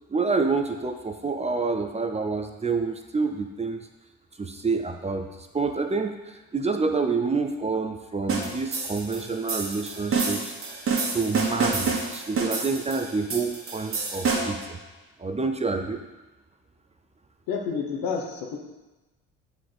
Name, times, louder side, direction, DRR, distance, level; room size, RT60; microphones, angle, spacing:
voice 1, 0.1-3.9 4.4-5.3 5.5-10.5 11.1-14.8 15.2-16.0, right 4 dB, 20° right, 6 dB, 0.6 m, -28 dB
sound 1, 8.3-14.7, right 4 dB, 40° right, 1.5 m, -28 dB
voice 2, 17.5-18.6, left 5 dB, 75° left, 2 dB, 1.2 m, -29 dB
6.7 x 4.0 x 4.7 m, 1.1 s
supercardioid pair, 65°, 35 cm